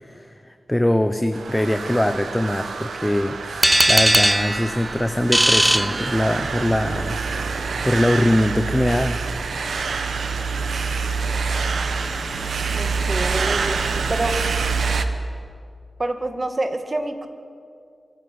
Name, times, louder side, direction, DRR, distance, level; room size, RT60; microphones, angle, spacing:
voice 1, 0.0-7.2 7.8-9.2, left 1 dB, 15° left, 8 dB, 1.0 m, -22 dB
sound 1, 1.3-15.0, right 4 dB, 85° right, 1.1 m, -26 dB
sound 2, 3.6-6.7, right 1 dB, 15° right, 0.4 m, -19 dB
voice 2, 12.7-14.4 16.0-17.3, right 2 dB, 40° right, 7 dB, 2.2 m, -27 dB
24.5 x 11.5 x 9.8 m, 2.3 s
cardioid pair, 45°, 0 cm